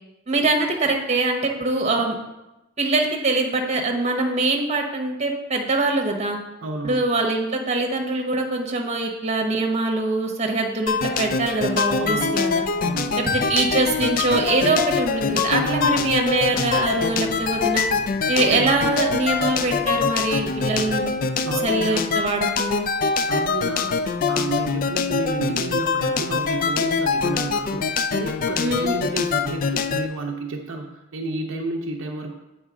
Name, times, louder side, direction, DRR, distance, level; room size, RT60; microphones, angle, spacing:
voice 1, 0.3-2.2 2.8-6.4 6.8-12.6 13.2-17.9 18.3-21.2 21.6-22.8 28.6-29.0, right 2 dB, 35° right, 2 dB, 1.0 m, -23 dB
voice 2, 6.6-7.1 12.0-12.4 12.8-13.2 15.5-15.9 18.4-18.8 21.4-22.0 23.3-32.4, right 3 dB, 70° right, 2 dB, 0.6 m, -31 dB
sound 1, 10.9-30.1, left 5 dB, 45° left, 0.3 m, -24 dB
sound 2, 13.4-21.1, equal, 25° left, 1.0 m, -42 dB
8.0 x 4.9 x 3.7 m, 0.96 s
head